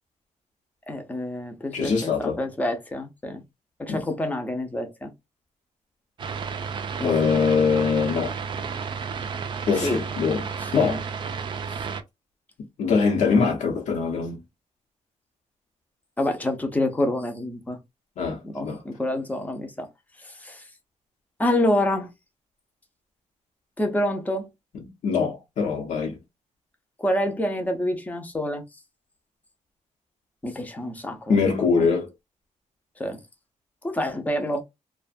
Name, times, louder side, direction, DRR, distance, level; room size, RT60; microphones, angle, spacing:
voice 1, 0.9-3.4 3.8-5.1 7.0-7.2 9.7-10.0 10.6-11.0 16.2-17.8 18.4-19.9 20.2-20.6 21.4-22.1 23.8-24.5 27.0-28.6 30.4-31.4 31.8-31.9 33.0-33.2 33.8-34.6, left 1 dB, 10° left, 0.6 m, -27 dB
voice 2, 1.7-2.4 3.9-4.0 7.0-8.4 9.7-10.4 10.7-11.0 12.8-14.4 18.2-18.8 24.7-26.2 31.3-32.1, left 5 dB, 70° left, 0.9 m, -23 dB
sound 1, 6.2-12.0, right 6 dB, 40° right, 0.4 m, -32 dB
2.5 x 2.2 x 2.5 m
wide cardioid pair, 170°, 13 cm